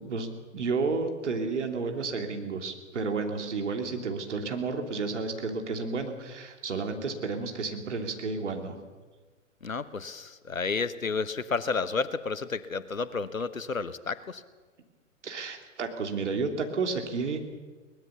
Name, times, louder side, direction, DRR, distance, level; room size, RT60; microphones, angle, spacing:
voice 1, 0.0-8.8 15.2-17.4, right 4 dB, 60° right, 4 dB, 3.1 m, -31 dB
voice 2, 9.6-14.4, left 4 dB, 80° left, 14 dB, 1.2 m, -31 dB
22.0 x 19.0 x 7.0 m, 1.4 s
figure-of-eight pair, 120°, 40 cm